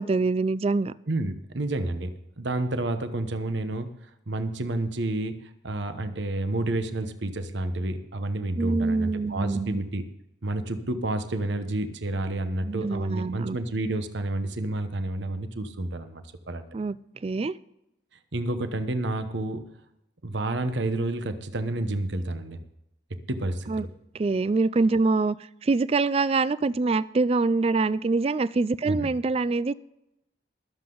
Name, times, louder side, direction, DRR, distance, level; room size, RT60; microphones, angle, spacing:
voice 1, 0.0-0.9 8.6-9.8 12.6-13.6 16.7-17.0 17.2-17.6 23.7-23.9 24.1-25.4 25.6-29.7, right 3 dB, 30° right, 18 dB, 0.3 m, -25 dB
voice 2, 1.1-2.1 2.4-3.9 4.3-10.0 10.4-16.6 18.3-19.7 20.2-22.6 23.3-23.9 28.9-29.1, right 2 dB, 70° right, 9 dB, 1.0 m, -30 dB
21.5 x 7.8 x 3.9 m, 0.85 s
head